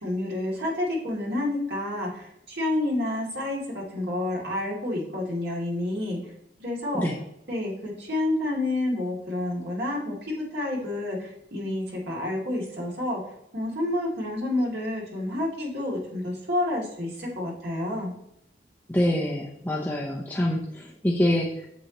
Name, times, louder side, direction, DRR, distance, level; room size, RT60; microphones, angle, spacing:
voice 1, 0.0-6.3 6.6-7.1 7.5-13.2 13.5-18.1, left 1 dB, 65° right, -3 dB, 2.7 m, -29 dB
voice 2, 18.9-21.7, left 1 dB, 10° left, -2 dB, 0.7 m, -26 dB
8.3 x 7.0 x 3.0 m, 0.76 s
head